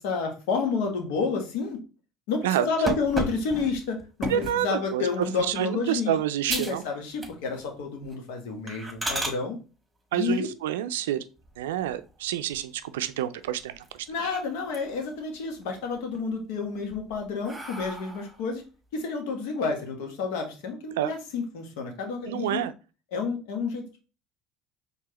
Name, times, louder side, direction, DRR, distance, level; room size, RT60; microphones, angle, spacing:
voice 1, 0.0-1.8 2.3-6.2 6.5-9.6 10.1-10.5 14.1-18.6 18.9-22.7 23.1-24.0, left 4 dB, 80° left, 1.2 m, -30 dB
voice 2, 2.4-2.9 4.3-5.0 5.4-6.8 10.1-11.2 11.6-14.1 21.0-21.1 22.3-22.7, right 11 dB, 85° right, 0.3 m, -28 dB
sound 1, 2.9-4.6 5.2-5.5 5.9-6.0 6.5-6.8 7.1-7.7 8.0-8.2 8.7-9.4 11.4-12.0 12.5-12.6 13.0-13.1 13.4-14.2 14.5-15.1 15.5-16.2 16.7-18.4, right 1 dB, 15° right, 1.5 m, -34 dB
4.7 x 3.4 x 3.0 m
hypercardioid pair, 80°, 0 cm